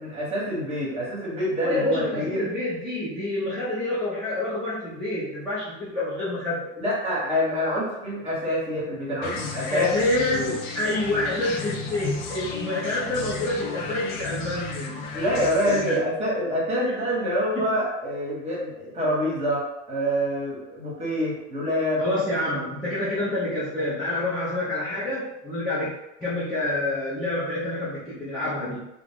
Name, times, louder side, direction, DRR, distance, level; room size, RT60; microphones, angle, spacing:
voice 1, 0.0-2.5 6.8-9.9 10.3-10.5 15.1-22.0, equal, 15° right, -5 dB, 1.0 m, -26 dB
voice 2, 1.6-6.6 9.7-15.0 15.7-16.0 16.8-16.9 17.5-17.8 22.0-25.9 26.2-28.8, left 2 dB, ahead, -12 dB, 0.5 m, -28 dB
sound 1, 9.2-16.0, left 5 dB, 50° left, 0.5 m, -34 dB
2.3 x 2.0 x 3.4 m, 0.92 s
supercardioid pair, 125°, 37 cm